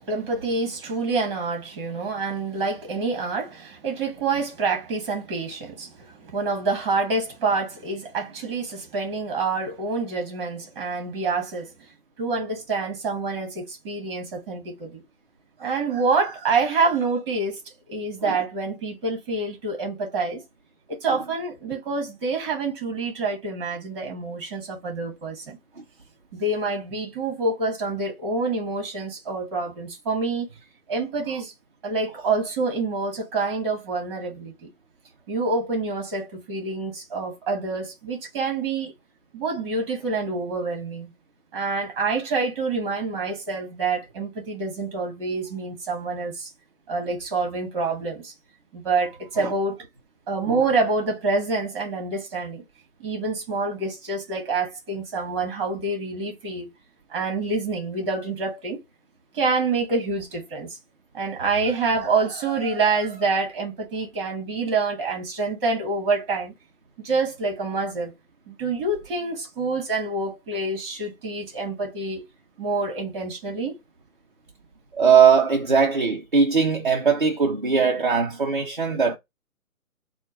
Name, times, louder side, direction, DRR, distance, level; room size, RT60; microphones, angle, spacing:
voice 1, 0.0-11.7 12.2-15.0 15.6-17.6 17.9-20.4 21.0-25.6 26.3-30.5 30.9-31.5 31.8-34.7 35.3-38.9 39.3-41.1 41.5-46.5 46.9-48.3 48.7-49.8 50.3-52.6 53.0-56.7 57.1-58.8 59.3-60.7 61.1-66.5 67.0-68.1 68.5-72.3 72.6-73.7, right 3 dB, 20° right, 1.2 m, -27 dB
voice 2, 75.0-79.2, right 6 dB, 35° right, 0.4 m, -20 dB
4.4 x 2.2 x 3.1 m
figure-of-eight pair, 155°, 44 cm